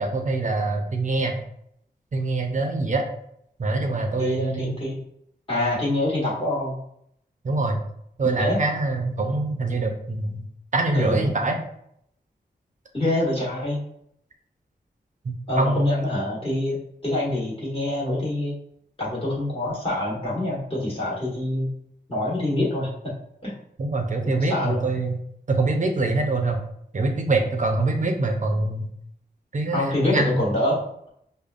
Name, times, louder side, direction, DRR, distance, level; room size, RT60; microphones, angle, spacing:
voice 1, 0.0-1.3 2.1-3.1 3.6-4.7 7.4-7.8 8.2-10.4 10.7-11.6 15.2-16.1 23.8-25.2 25.5-26.6 26.9-28.9 29.5-29.9 30.1-30.4, right 2 dB, 45° right, 3 dB, 0.6 m, -24 dB
voice 2, 4.2-5.0 5.5-6.8 8.2-8.6 10.9-11.3 12.9-13.8 15.5-16.8 17.0-18.5 19.0-21.7 22.1-22.9 23.4-23.5 24.2-24.9 29.7-31.1, left 1 dB, 30° left, -6 dB, 1.3 m, -25 dB
5.1 x 2.2 x 2.4 m, 0.72 s
wide cardioid pair, 85°, 17 cm